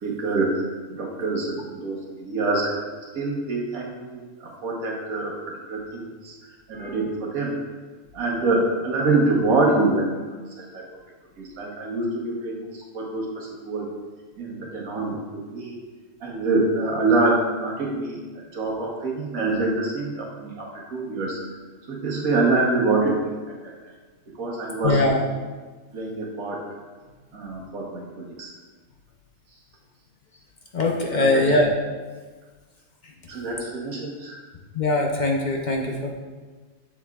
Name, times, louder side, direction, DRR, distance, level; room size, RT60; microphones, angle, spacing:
voice 1, 0.0-6.3 6.7-7.6 8.1-10.4 10.7-10.8 11.4-13.9 14.4-15.8 16.2-21.4 21.9-23.3 23.6-23.7 24.4-25.0 25.9-26.6 27.3-28.5 31.2-31.5 33.3-34.4, right 2 dB, 85° right, -2 dB, 1.6 m, -25 dB
voice 2, 24.8-25.2 30.7-31.7 34.7-36.1, left 2 dB, 45° left, 0 dB, 0.6 m, -21 dB
7.1 x 6.8 x 2.3 m, 1.4 s
omnidirectional pair, 1.4 m